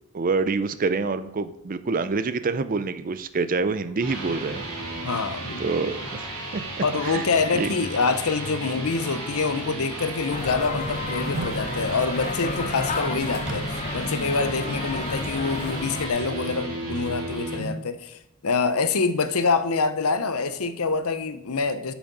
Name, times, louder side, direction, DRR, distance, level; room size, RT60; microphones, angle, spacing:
voice 1, 0.1-4.6 5.6-7.3 7.5-7.7, right 4 dB, 40° right, 0.5 m, -27 dB
sound 1, 3.8-17.7, right 2 dB, 80° right, 4.0 m, -34 dB
voice 2, 5.0-5.9 6.8-21.9, left 4 dB, 75° left, 0.7 m, -26 dB
sound 2, 10.3-16.1, left 3 dB, 30° left, 0.7 m, -32 dB
sound 3, 11.1-11.7 13.5-14.1 14.4-14.5, right 2 dB, 55° right, 0.9 m, -35 dB
8.5 x 6.1 x 5.4 m
head